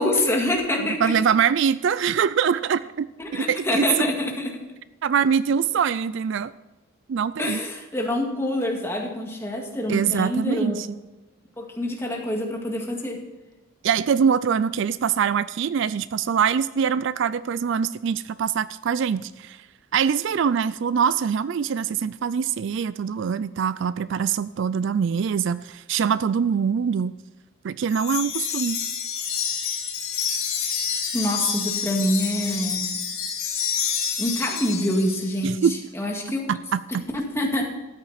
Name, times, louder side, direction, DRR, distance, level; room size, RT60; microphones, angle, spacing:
voice 1, 0.0-1.1 3.2-4.6 7.4-10.8 11.6-13.2 31.1-32.8 34.2-35.7 35.9-36.6 36.9-37.8, left 1 dB, 10° left, 0 dB, 2.0 m, -26 dB
voice 2, 0.8-3.9 5.0-6.5 7.1-7.6 9.9-10.9 13.8-19.6 19.9-27.1 27.6-28.8 35.4-35.8 36.5-37.1, right 7 dB, 55° right, 16 dB, 0.3 m, -23 dB
Wind chime, 27.9-35.4, left 7 dB, 80° left, 2.8 m, -28 dB
13.5 x 9.5 x 4.2 m, 1.1 s
head